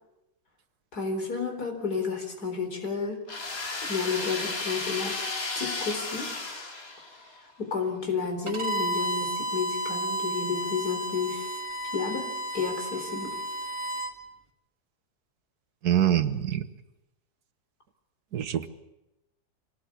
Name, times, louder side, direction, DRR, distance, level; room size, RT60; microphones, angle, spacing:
voice 1, 0.9-3.2 3.8-5.2 5.6-6.3 7.6-11.6 11.9-12.3 12.5-13.4, left 5 dB, 85° left, 4 dB, 4.6 m, -31 dB
sound 1, 3.3-7.4, left 3 dB, 65° left, 3.0 m, -33 dB
Bowed string instrument, 8.5-14.1, right 1 dB, 20° right, 2.0 m, -32 dB
voice 2, 15.8-16.7 18.3-18.7, right 11 dB, 85° right, 11 dB, 1.8 m, -24 dB
25.0 x 18.5 x 8.5 m, 0.92 s
omnidirectional pair, 1.6 m